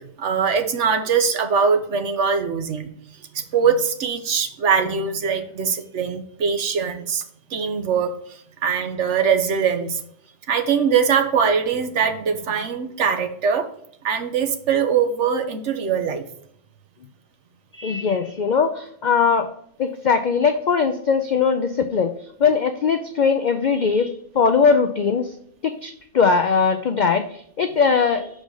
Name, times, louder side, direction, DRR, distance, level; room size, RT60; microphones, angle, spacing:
voice 1, 0.0-2.9 3.3-7.2 7.5-10.0 10.5-13.7 14.0-16.3, right 6 dB, 65° right, 7 dB, 1.1 m, -22 dB
voice 2, 17.7-19.5 19.8-22.1 22.4-25.3 25.6-28.3, left 5 dB, 70° left, 8 dB, 0.4 m, -20 dB
6.2 x 5.1 x 3.8 m, 0.67 s
omnidirectional pair, 1.4 m